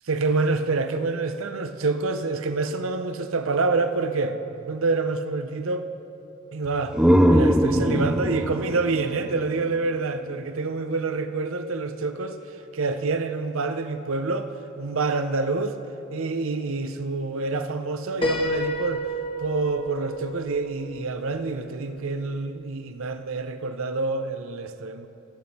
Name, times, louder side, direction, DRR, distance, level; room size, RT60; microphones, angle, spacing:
voice 1, 0.1-5.9 6.5-7.0 7.3-12.4 12.7-14.5 14.8-15.8 16.1-19.0 19.4-25.1, right 3 dB, 65° right, 0.6 m, -27 dB
sound 1, 6.6-10.3, equal, 5° right, 0.4 m, -22 dB
Piano, 18.2-22.0, equal, 25° left, 1.0 m, -31 dB
19.0 x 8.0 x 4.2 m
head